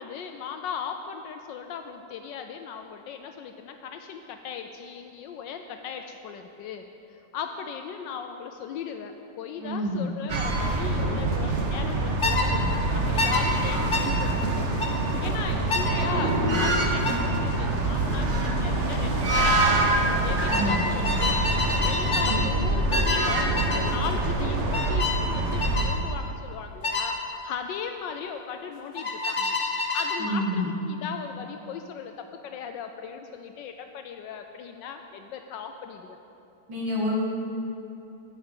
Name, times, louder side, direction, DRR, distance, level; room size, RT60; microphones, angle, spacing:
voice 1, 0.0-14.6 15.2-19.9 20.2-29.6 29.9-36.2, left 7 dB, 80° left, 6 dB, 1.2 m, -38 dB
voice 2, 9.6-10.1 20.5-20.8 30.2-30.7 36.7-37.1, equal, 85° right, -6 dB, 2.7 m, -28 dB
sound 1, 10.3-25.8, right 2 dB, 45° right, 1.2 m, -25 dB
sound 2, 12.2-12.5 13.2-13.4 13.9-14.1 14.8-15.0 15.7-15.9 17.0-17.3 18.7-19.0 19.2-19.6 20.5-22.4 22.9-23.3 23.6-23.9 24.7-25.2 25.6-25.9 26.8-27.1 29.0-30.2, left 3 dB, 35° left, 1.0 m, -27 dB
10.5 x 6.6 x 8.6 m, 2.9 s
omnidirectional pair, 2.0 m